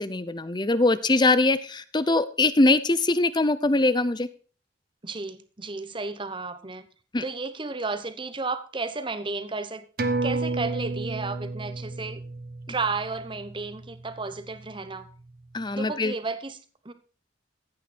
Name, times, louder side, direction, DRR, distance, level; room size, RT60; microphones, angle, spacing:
voice 1, 0.0-4.3 7.1-7.2 15.5-16.1, left 2 dB, 25° left, 15 dB, 0.7 m, -22 dB
voice 2, 5.0-6.9 7.2-9.8 10.2-12.2 12.7-15.1 15.8-16.6 16.8-16.9, right 3 dB, 25° right, 11 dB, 1.0 m, -33 dB
sound 1, 10.0-14.9 15.3-15.4, right 3 dB, 55° right, 1.4 m, -32 dB
15.0 x 9.2 x 4.4 m, 0.39 s
head